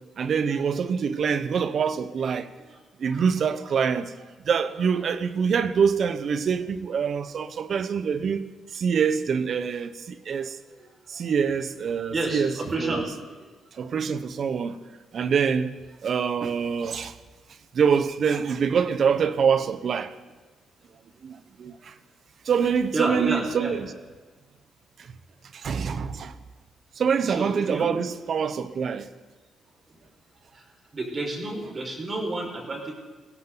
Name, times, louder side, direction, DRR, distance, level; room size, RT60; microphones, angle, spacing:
voice 1, 0.0-2.5 3.0-4.1 4.4-8.4 8.7-10.6 11.1-13.0 13.7-14.8 15.1-17.2 17.7-20.1 21.2-21.9 22.4-23.8 25.0-25.1 25.5-26.3 26.9-29.1, right 6 dB, 55° right, 1.0 m, -25 dB
voice 2, 10.7-11.3 12.1-13.1 13.4-13.5 14.7-14.8 21.8-21.9 22.9-23.7 27.3-27.9 29.9-30.0 30.5-30.7 30.9-32.9, right 2 dB, 35° right, 5.3 m, -31 dB
21.5 x 16.5 x 4.0 m
cardioid pair, 90°, 0 cm